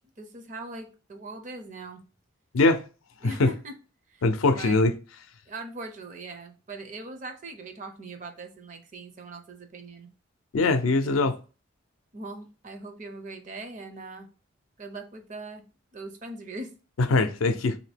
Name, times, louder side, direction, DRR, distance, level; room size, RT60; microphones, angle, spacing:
voice 1, 0.2-2.0 3.2-3.7 4.1-4.2 4.5-4.8 5.5-10.1 10.8-11.3 12.1-14.3 14.8-15.6 15.9-16.7, right 2 dB, 40° right, 0.5 m, -40 dB
voice 2, 4.2-4.9 10.5-11.3 17.0-17.8, left 3 dB, 85° left, 0.5 m, -22 dB
2.8 x 2.6 x 3.3 m
head